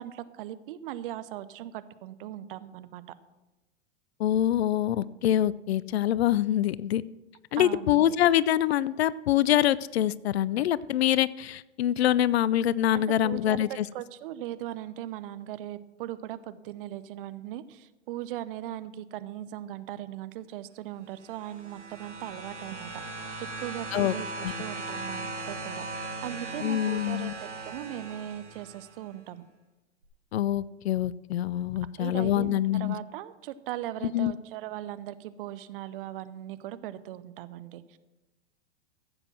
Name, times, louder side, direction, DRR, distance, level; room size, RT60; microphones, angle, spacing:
voice 1, 0.0-3.0 7.6-8.1 12.9-23.3 23.6-29.4 32.0-38.0, right 13 dB, 50° right, 14 dB, 0.9 m, -39 dB
voice 2, 4.2-7.0 7.5-13.8 23.9-24.1 24.4-24.5 26.6-27.3 30.3-33.0 34.1-34.3, left 12 dB, 65° left, 20 dB, 0.5 m, -25 dB
sound 1, 21.2-29.0 30.0-30.1, right 2 dB, 80° right, 2.9 m, -38 dB
15.0 x 8.0 x 6.1 m, 1.0 s
figure-of-eight pair, 100°, 35 cm